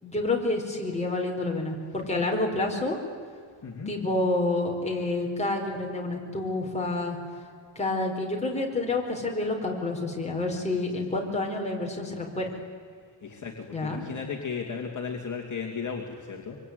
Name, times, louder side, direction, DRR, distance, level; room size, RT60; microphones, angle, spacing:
voice 1, 0.0-3.0 3.9-7.2 7.7-12.5 13.7-14.0, left 2 dB, 15° left, -1 dB, 4.7 m, -28 dB
voice 2, 3.6-3.9 10.9-11.1 13.2-16.6, left 5 dB, 40° left, 0 dB, 2.9 m, -35 dB
25.0 x 24.5 x 9.6 m, 2.1 s
wide cardioid pair, 155°, 45 cm